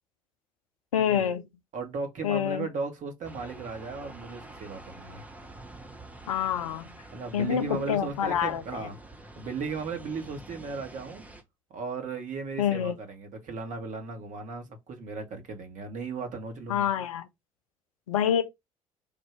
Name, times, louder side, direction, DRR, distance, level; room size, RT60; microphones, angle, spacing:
voice 1, 0.9-1.5 2.2-2.7 6.3-6.9 7.3-8.9 12.6-13.0 16.7-17.3 18.1-18.4, left 9 dB, 75° left, 0.5 m, -27 dB
voice 2, 1.7-5.2 7.1-9.0 9.4-11.3 11.7-16.9, right 4 dB, 45° right, 1.3 m, -36 dB
sound 1, 3.2-11.4, right 2 dB, 10° right, 0.8 m, -47 dB
3.7 x 2.6 x 4.5 m
figure-of-eight pair, 50°, 18 cm